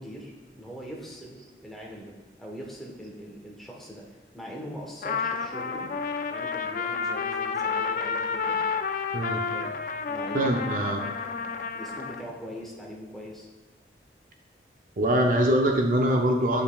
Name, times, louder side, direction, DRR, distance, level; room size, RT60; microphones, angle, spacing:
voice 1, 0.0-5.9 6.3-8.6 9.5-9.7 10.1-10.8 11.5-13.5, equal, ahead, -3 dB, 1.1 m, -42 dB
Trumpet, 5.0-12.2, left 5 dB, 50° left, 0.3 m, -30 dB
voice 2, 10.3-11.0 15.0-16.6, right 1 dB, 50° right, 2 dB, 0.5 m, -23 dB
8.8 x 5.5 x 2.3 m, 1.3 s
head